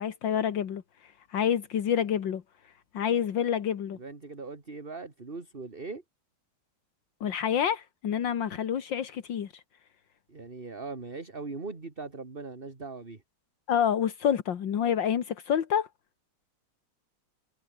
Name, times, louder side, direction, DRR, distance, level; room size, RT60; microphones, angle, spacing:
voice 1, 0.0-2.4 2.9-4.0 7.2-9.6 13.7-15.9, left 8 dB, 80° left, 2.1 m, -28 dB
voice 2, 3.9-6.0 10.3-13.2, right 3 dB, 30° right, 2.6 m, -40 dB
omnidirectional pair, 2.0 m